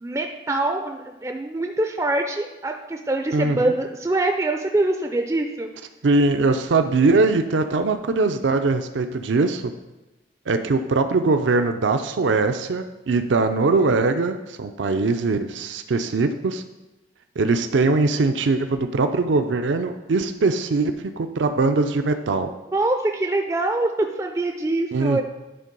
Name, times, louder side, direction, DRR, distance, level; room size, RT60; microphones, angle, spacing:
voice 1, 0.0-5.7 22.7-25.2, right 2 dB, 15° right, 4 dB, 0.3 m, -24 dB
voice 2, 3.3-3.7 6.0-9.6 10.5-16.6 17.4-22.5 24.9-25.2, right 3 dB, 80° right, 8 dB, 0.5 m, -21 dB
10.0 x 3.8 x 5.3 m, 1.0 s
head